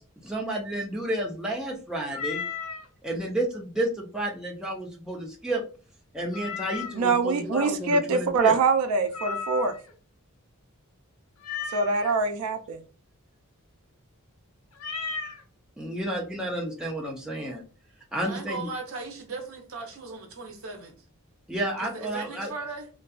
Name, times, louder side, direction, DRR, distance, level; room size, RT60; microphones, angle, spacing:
voice 1, 0.2-2.4 3.0-5.6 6.1-8.6 15.8-17.6 18.1-18.7 21.5-22.5, right 1 dB, 5° right, 0.5 m, -31 dB
Meow, 2.1-2.9 6.3-7.1 9.1-9.9 11.4-12.1 14.8-15.4, left 6 dB, 70° left, 0.5 m, -34 dB
voice 2, 6.9-9.7 11.7-12.8, right 4 dB, 90° right, 0.4 m, -24 dB
voice 3, 18.2-21.0 21.8-22.9, right 3 dB, 65° right, 0.7 m, -38 dB
2.6 x 2.3 x 2.3 m
head